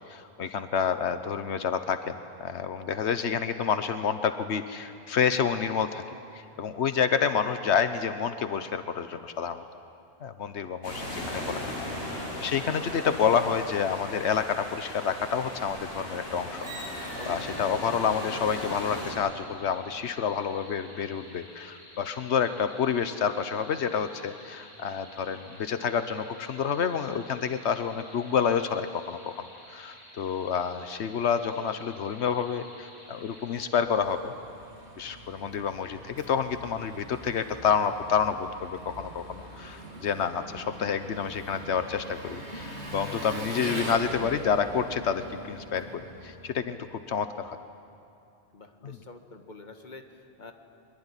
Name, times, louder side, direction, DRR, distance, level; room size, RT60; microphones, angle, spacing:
voice 1, 0.1-6.0 6.3-9.6 10.2-11.6 12.0-16.7 16.9-29.4 29.7-34.3 35.0-45.9 46.2-47.6 48.8-49.0, left 7 dB, 85° left, 10 dB, 1.2 m, -29 dB
sound 1, 10.8-19.1, left 1 dB, 65° left, 7.5 m, -37 dB
sound 2, 16.9-33.8, equal, 25° left, 4.7 m, -51 dB
voice 2, 17.1-17.6 48.5-50.5, left 3 dB, 45° left, 5 dB, 1.8 m, -47 dB
Engine, 33.3-46.9, right 1 dB, 90° right, 3.6 m, -42 dB
23.0 x 23.0 x 9.8 m, 2.7 s
omnidirectional pair, 1.1 m